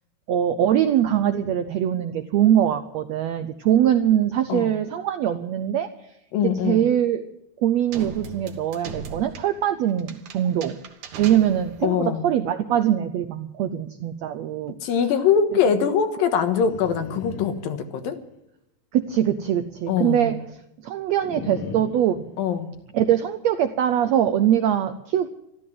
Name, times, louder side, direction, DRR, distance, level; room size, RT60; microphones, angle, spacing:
voice 1, 0.3-5.9 6.4-7.2 7.6-10.8 11.2-14.8 18.9-20.4 20.8-22.2 22.9-25.3, right 10 dB, 80° right, 9 dB, 1.5 m, -22 dB
voice 2, 6.3-6.9 11.8-12.2 14.8-18.2 19.9-20.3 22.4-22.7, left 7 dB, 85° left, 7 dB, 3.1 m, -22 dB
sound 1, 7.9-12.0, right 5 dB, 65° right, 2.6 m, -39 dB
sound 2, 16.5-18.4 21.2-22.8, left 6 dB, 55° left, 1.6 m, -39 dB
14.0 x 13.0 x 7.6 m, 0.82 s
omnidirectional pair, 3.9 m